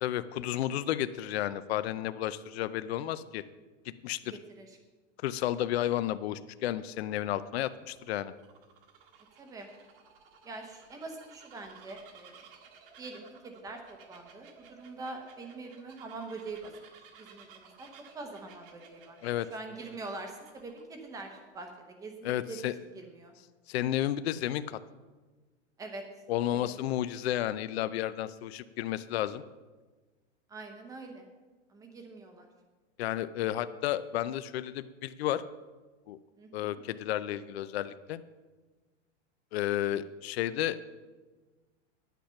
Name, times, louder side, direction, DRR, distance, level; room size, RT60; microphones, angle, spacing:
voice 1, 0.0-3.4 4.0-4.4 5.2-8.3 19.2-19.5 22.2-22.7 23.7-24.8 26.3-29.4 33.0-35.4 36.1-36.2 36.5-38.2 39.5-40.8, left 12 dB, 60° left, 14 dB, 0.6 m, -32 dB
voice 2, 4.3-4.8 9.4-9.7 10.4-12.4 13.0-17.9 18.1-19.2 19.5-23.3 25.8-26.0 26.5-26.7 30.5-31.3 31.7-32.5 36.4-36.8, right 3 dB, 10° right, 4 dB, 0.8 m, -44 dB
Bird vocalization bird call bird song, 6.8-21.7, right 6 dB, 45° right, 1.4 m, -57 dB
10.0 x 9.2 x 5.7 m, 1.3 s
supercardioid pair, 170°, 36 cm